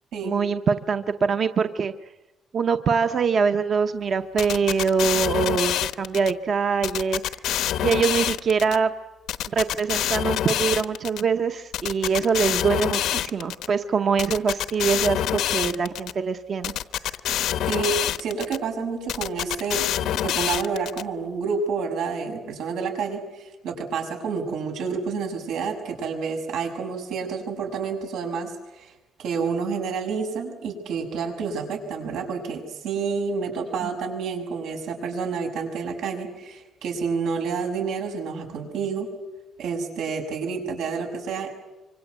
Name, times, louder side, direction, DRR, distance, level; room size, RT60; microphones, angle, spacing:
voice 1, 0.2-1.9 2.5-7.2 7.8-8.9 9.5-16.7 17.0-17.1 33.8-33.9, right 5 dB, 35° right, 8 dB, 0.9 m, -23 dB
sound 1, 4.4-6.3 6.8-8.8 9.3-11.2 11.7-13.7 14.2-16.1 16.6-18.6 19.1-21.0, left 11 dB, 85° left, 1.0 m, -26 dB
voice 2, 17.7-19.9 20.2-28.9 29.2-39.1 39.6-41.5, right 5 dB, 90° right, 3 dB, 6.6 m, -29 dB
26.0 x 25.0 x 8.2 m, 1.1 s
cardioid pair, 175°, 0 cm